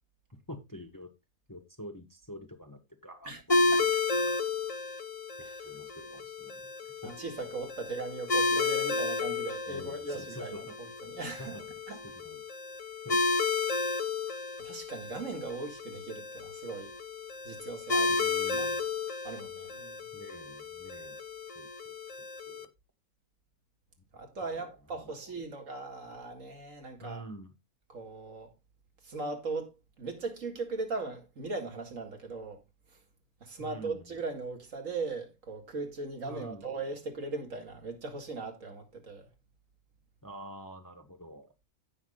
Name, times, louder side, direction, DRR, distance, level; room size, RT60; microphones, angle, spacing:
voice 1, 0.5-1.1 1.5-3.3 3.6-3.9 4.1-4.4 5.6-7.3 9.7-10.8 11.4-11.8 12.0-12.4 13.0-13.2 18.1-18.9 20.1-21.2 21.5-21.9 22.4-22.7 24.5-25.3 27.0-27.5 33.6-34.1 36.2-36.7 40.2-41.5, equal, 15° left, 1.2 m, -47 dB
voice 2, 3.3-4.0 5.4-5.6 7.0-10.7 11.0-11.6 11.9-12.0 14.6-16.9 17.4-18.2 18.5-18.7 19.2-20.1 24.1-27.2 27.9-28.5 29.0-29.7 30.0-32.6 33.4-39.3, right 3 dB, 60° right, 2.3 m, -38 dB
sound 1, 3.5-22.6, left 3 dB, 35° left, 0.6 m, -32 dB
16.5 x 6.0 x 2.3 m
omnidirectional pair, 1.6 m